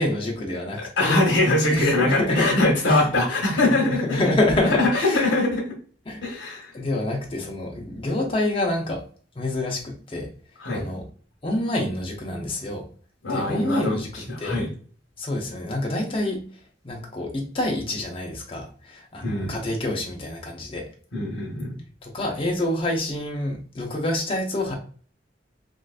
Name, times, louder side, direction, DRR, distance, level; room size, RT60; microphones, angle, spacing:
voice 1, 0.0-1.2 1.7-2.6 2.9-3.1 3.5-5.4 6.1-6.2 6.7-9.0 9.4-10.3 10.7-11.1 11.4-12.9 13.3-14.7 15.2-16.4 16.8-20.9 22.0-24.7, left 1 dB, 30° left, 0 dB, 0.7 m, -27 dB
voice 2, 1.0-4.3 4.8-5.7 6.2-6.7 10.6-10.8 13.2-14.7 19.2-19.7 21.1-21.8, left 2 dB, 75° left, -4 dB, 1.1 m, -23 dB
3.7 x 2.5 x 2.4 m, 0.43 s
head